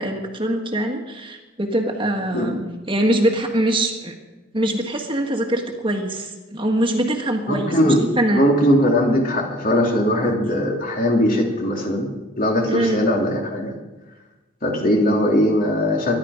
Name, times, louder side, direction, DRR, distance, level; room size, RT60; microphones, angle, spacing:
voice 1, 0.0-4.2 4.5-8.5 12.7-13.0, right 1 dB, 25° right, 3 dB, 1.7 m, -23 dB
voice 2, 7.5-8.0 8.3-12.1 12.4-13.7 14.6-16.2, equal, 45° left, 0 dB, 3.1 m, -19 dB
24.0 x 11.5 x 5.1 m, 1.1 s
head